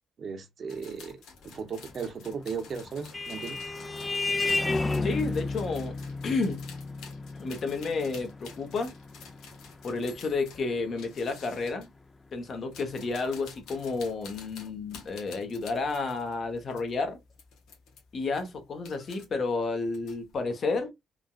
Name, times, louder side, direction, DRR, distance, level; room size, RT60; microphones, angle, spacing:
voice 1, 0.2-3.7, right 5 dB, 55° right, 0.8 m, -37 dB
sound 1, 0.7-11.9 12.6-17.0 17.3-18.0 18.3-19.2 19.6-20.4, left 5 dB, 85° left, 1.3 m, -50 dB
Vehicle horn car horn honking, 2.5-11.5, left 3 dB, 20° left, 0.4 m, -33 dB
voice 2, 5.0-5.9 6.2-6.6 7.4-8.9 9.8-11.9 12.3-17.2 18.1-20.9, left 3 dB, 50° left, 1.1 m, -31 dB
3.7 x 2.3 x 2.3 m
cardioid pair, 90°, 0 cm